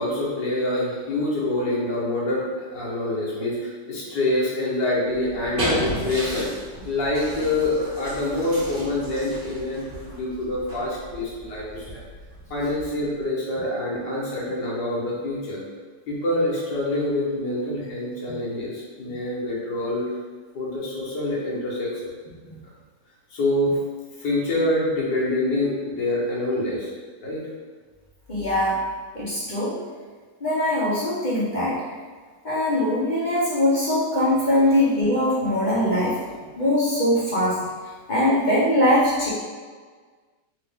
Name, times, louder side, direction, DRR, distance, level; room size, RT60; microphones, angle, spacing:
voice 1, 0.0-2.4 2.7-6.5 6.9-12.0 12.5-15.6 16.1-20.0 20.5-22.1 23.3-23.8 24.2-26.9 27.2-27.4, left 1 dB, 80° left, -6 dB, 1.8 m, -26 dB
sound 1, 5.1-13.2, equal, 35° right, 1.3 m, -34 dB
voice 2, 28.3-28.8 29.1-29.8 30.4-31.8 32.4-36.2 36.6-37.7 38.1-39.3, left 1 dB, 40° left, -8 dB, 0.7 m, -21 dB
3.7 x 2.9 x 3.5 m, 1.5 s
omnidirectional pair, 1.9 m